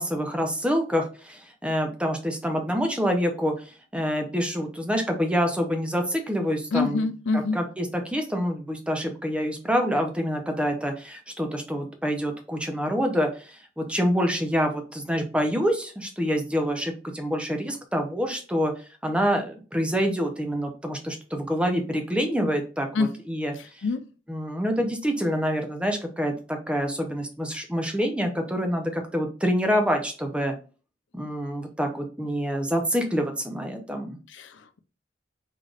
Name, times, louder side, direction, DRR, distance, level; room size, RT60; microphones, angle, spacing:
voice 1, 0.0-3.5 3.9-7.1 7.3-18.7 19.0-23.5 24.3-30.5 31.1-34.2, equal, 5° right, 4 dB, 0.6 m, -26 dB
voice 2, 6.7-7.6 22.9-23.1 23.5-24.0 34.3-34.8, left 3 dB, 90° left, 9 dB, 0.5 m, -26 dB
3.8 x 3.4 x 2.4 m, 0.35 s
head